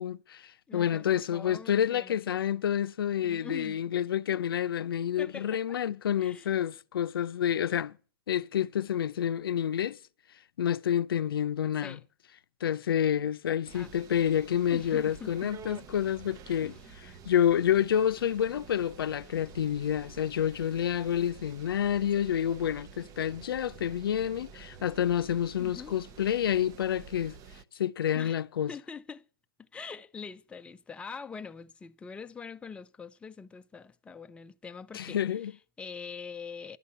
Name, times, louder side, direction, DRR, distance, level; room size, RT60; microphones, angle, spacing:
voice 1, 0.0-8.0 8.3-10.0 10.6-12.0 12.6-16.7 17.3-27.4 27.7-28.7 34.9-35.5, left 9 dB, 85° left, 0.5 m, -28 dB
voice 2, 0.7-2.4 3.2-3.8 5.2-5.8 6.2-6.5 11.8-12.0 13.7-13.9 14.7-15.5 16.6-16.9 22.2-22.3 25.6-26.0 28.1-28.4 28.7-29.3 29.6-36.8, left 5 dB, 10° left, 0.5 m, -44 dB
sound 1, 13.6-27.6, right 6 dB, 30° right, 0.7 m, -49 dB
11.5 x 8.2 x 6.6 m
hypercardioid pair, 130°, 12 cm